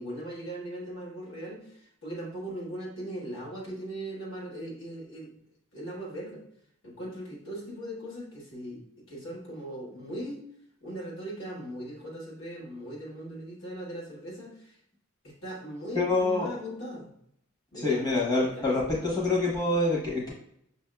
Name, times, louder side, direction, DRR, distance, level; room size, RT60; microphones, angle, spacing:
voice 1, 0.0-1.6 2.0-5.3 5.7-6.4 6.8-8.8 9.1-10.4 10.8-14.7 15.2-17.1 17.7-19.1, right 1 dB, 65° left, -3 dB, 1.3 m, -39 dB
voice 2, 15.9-16.5 17.7-20.3, left 2 dB, 20° left, -5 dB, 1.1 m, -26 dB
6.0 x 2.6 x 2.2 m, 0.71 s
head